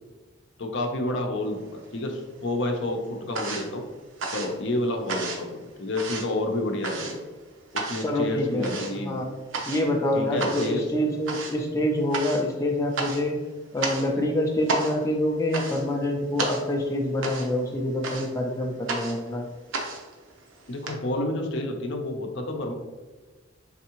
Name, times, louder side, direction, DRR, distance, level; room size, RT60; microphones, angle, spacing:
voice 1, 0.6-3.8 4.3-7.2 7.7-9.2 10.1-10.8 20.7-22.7, left 1 dB, 60° left, 3 dB, 0.6 m, -29 dB
sound 1, 1.6-2.4 2.6-20.9, right 3 dB, 80° right, 0.7 m, -34 dB
voice 2, 8.0-9.3 9.7-13.3 13.7-19.5, left 1 dB, 15° left, 0 dB, 0.4 m, -26 dB
4.0 x 3.5 x 2.9 m, 1.3 s
head